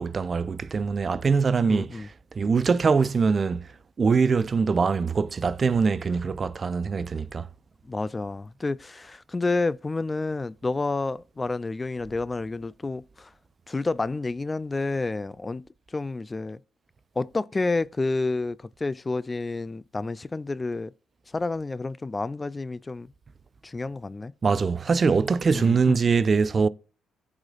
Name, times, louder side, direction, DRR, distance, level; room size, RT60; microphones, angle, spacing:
voice 1, 0.0-3.7 4.0-7.5 24.4-26.7, right 5 dB, 40° right, 0.5 m, -23 dB
voice 2, 1.7-2.1 7.9-13.3 13.7-16.6 17.2-20.9 21.3-23.1 23.6-24.3 25.5-26.0, left 3 dB, 20° left, 0.3 m, -29 dB
14.5 x 5.0 x 2.4 m
cardioid pair, 90°, 0 cm